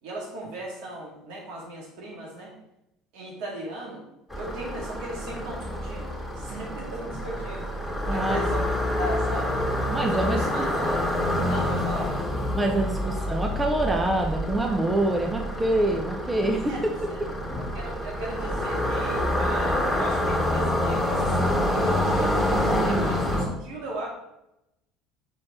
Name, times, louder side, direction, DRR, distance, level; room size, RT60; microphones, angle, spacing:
voice 1, 0.0-2.6 3.1-4.0 4.4-8.6 9.0-9.6 10.1-11.0 11.5-12.2 13.2-13.3 16.7-17.2 17.7-22.5 22.8-24.1, right 1 dB, 65° right, -2 dB, 2.2 m, -37 dB
sound 1, 4.3-23.4, left 1 dB, 5° left, 2.4 m, -27 dB
voice 2, 8.1-8.4 9.9-10.4 11.8-11.9 12.5-16.9 22.8-23.2, right 1 dB, 15° right, 2 dB, 0.9 m, -26 dB
6.2 x 4.3 x 4.3 m, 0.86 s
hypercardioid pair, 65°, 0 cm